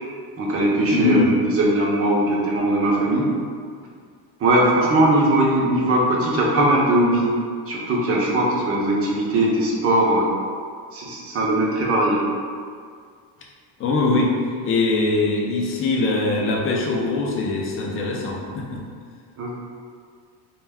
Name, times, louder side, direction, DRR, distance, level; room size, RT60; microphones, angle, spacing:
voice 1, 0.4-1.2 1.5-3.3 4.4-7.3 7.7-10.3 10.9-12.2 19.4-19.5, right 1 dB, 30° right, -3 dB, 0.5 m, -20 dB
voice 2, 0.9-1.3 13.8-14.3 14.6-18.8, left 3 dB, 30° left, -2 dB, 0.4 m, -22 dB
2.2 x 2.2 x 3.4 m, 2.1 s
cardioid pair, 120°, 47 cm